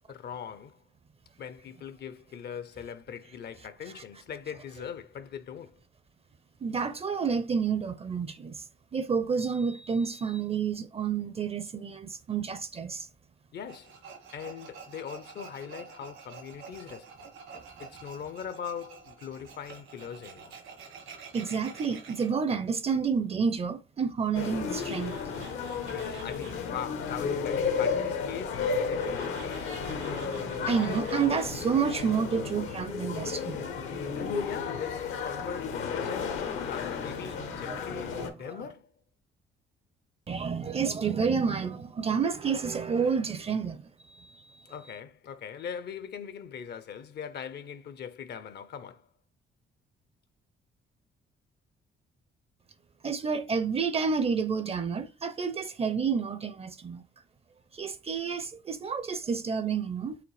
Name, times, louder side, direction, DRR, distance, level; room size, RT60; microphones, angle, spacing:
voice 1, 0.1-0.8 1.4-5.8 13.5-14.0 14.3-17.3 17.8-20.6 25.9-29.8 34.1-38.9 44.7-49.1, left 8 dB, 55° left, 0.5 m, -41 dB
voice 2, 6.6-8.6 8.9-13.1 21.3-25.1 30.7-33.6 38.1-38.2 40.3-43.8 44.1-44.3 53.0-57.0 57.8-60.2, right 6 dB, 30° right, 0.5 m, -29 dB
Tools, 13.7-22.3 24.4-26.7 28.9-31.4, right 5 dB, 75° right, 1.3 m, -48 dB
sound 1, 24.3-38.3, left 5 dB, 85° left, 1.0 m, -33 dB
4.9 x 3.0 x 3.2 m
cardioid pair, 90°, 20 cm